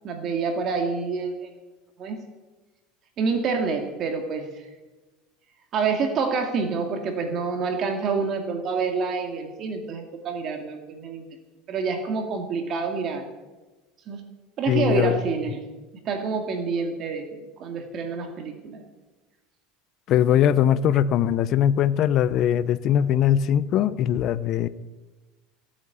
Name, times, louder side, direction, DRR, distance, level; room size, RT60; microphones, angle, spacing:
voice 1, 0.0-1.5 2.0-2.2 3.2-4.5 5.7-11.2 11.7-13.2 14.1-14.2 14.6-15.6 16.1-18.8, right 5 dB, 45° right, 5 dB, 2.4 m, -27 dB
voice 2, 14.7-15.2 20.1-24.7, left 10 dB, 50° left, 15 dB, 0.7 m, -21 dB
16.5 x 8.8 x 8.4 m, 1.2 s
supercardioid pair, 120°, 0 cm